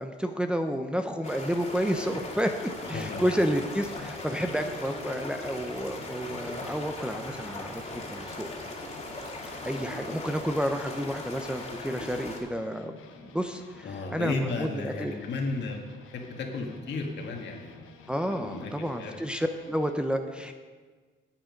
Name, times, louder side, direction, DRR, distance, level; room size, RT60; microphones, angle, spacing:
voice 1, 0.0-8.5 9.3-12.9 13.2-15.2 18.1-20.5, equal, 5° right, 5 dB, 0.7 m, -30 dB
sound 1, 1.2-12.4, left 2 dB, 35° left, 2.3 m, -39 dB
sound 2, 1.9-10.9, right 1 dB, 65° right, 3.6 m, -50 dB
voice 2, 2.8-3.3 13.8-15.8 16.1-17.7 18.3-19.2, left 3 dB, 60° left, 2 dB, 1.8 m, -34 dB
sound 3, 3.1-19.9, left 5 dB, 85° left, 1.0 m, -51 dB
8.9 x 8.7 x 5.3 m, 1.5 s
cardioid pair, 90°, 20 cm